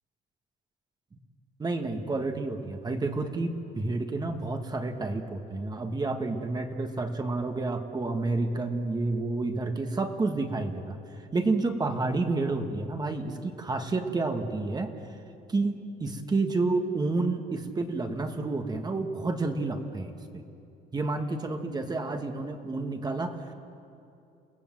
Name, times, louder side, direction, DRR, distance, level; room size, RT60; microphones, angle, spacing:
voice 1, 1.6-11.0 11.3-14.9 15.5-20.4 20.9-23.4, right 3 dB, 25° right, 5 dB, 1.7 m, -30 dB
28.5 x 17.5 x 7.7 m, 2.6 s
cardioid pair, 110°, 17 cm